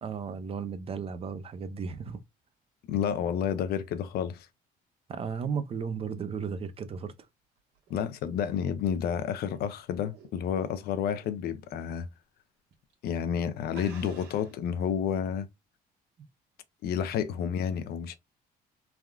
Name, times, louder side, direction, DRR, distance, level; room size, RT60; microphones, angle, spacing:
voice 1, 0.0-2.2 5.1-7.3 17.0-17.1, right 6 dB, 35° right, 0.5 m, -35 dB
voice 2, 2.9-4.5 7.9-12.1 13.0-15.5 16.8-18.2, left 8 dB, 70° left, 0.5 m, -30 dB
sound 1, 7.6-10.7 11.1-11.4 11.8-11.9 12.7-12.9 13.2-13.3 13.7-14.7, right 6 dB, 85° right, 1.3 m, -52 dB
3.4 x 2.3 x 2.2 m
cardioid pair, 110°, 17 cm